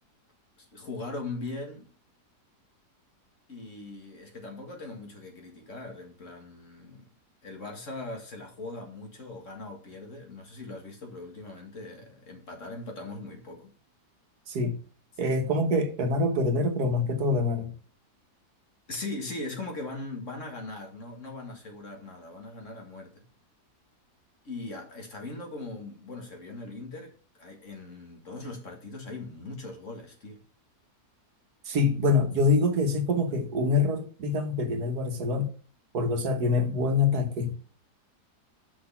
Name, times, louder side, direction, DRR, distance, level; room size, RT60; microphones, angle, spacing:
voice 1, 0.6-1.9 3.5-7.1 7.4-13.7 18.9-23.2 24.4-27.1 27.4-30.4, left 2 dB, 50° left, 2.2 m, -40 dB
voice 2, 14.5-14.8 15.2-17.7 31.7-35.5 35.9-37.5, left 3 dB, 70° right, 1.8 m, -25 dB
6.4 x 5.8 x 5.7 m
omnidirectional pair, 1.7 m